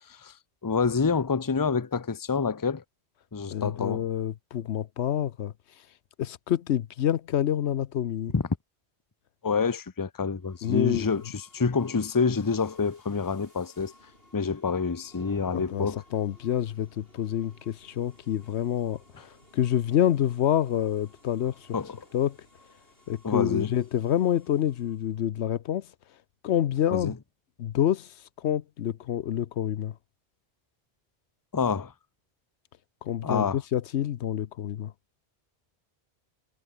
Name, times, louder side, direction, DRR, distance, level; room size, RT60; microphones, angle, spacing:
voice 1, 0.6-2.8 3.3-4.0 8.3-8.4 9.4-13.9 14.3-16.0 21.7-21.9 23.2-23.7 26.9-27.1 31.5-31.9 33.2-33.6, left 5 dB, 20° left, 0.7 m, -27 dB
voice 2, 3.5-5.5 6.2-8.3 10.6-11.1 15.5-21.7 22.1-22.4 23.1-25.9 26.4-27.1 27.6-29.9 33.0-34.9, left 10 dB, 85° left, 1.0 m, -27 dB
sound 1, 10.4-25.2, left 1 dB, 60° left, 6.7 m, -57 dB
omnidirectional pair, 1.1 m